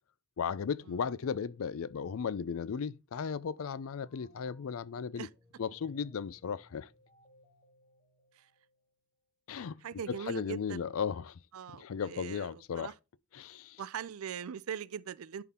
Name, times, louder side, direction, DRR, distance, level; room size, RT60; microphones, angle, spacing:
voice 1, 0.4-5.3 5.6-6.9 9.5-9.8 10.1-11.4 11.7-12.9 13.3-13.8, left 6 dB, 70° left, 0.4 m, -36 dB
sound 1, 3.6-9.1, left 2 dB, 30° left, 2.1 m, -64 dB
voice 2, 9.8-11.0 11.5-12.9 13.8-15.4, right 7 dB, 75° right, 0.4 m, -41 dB
11.0 x 3.8 x 4.3 m
head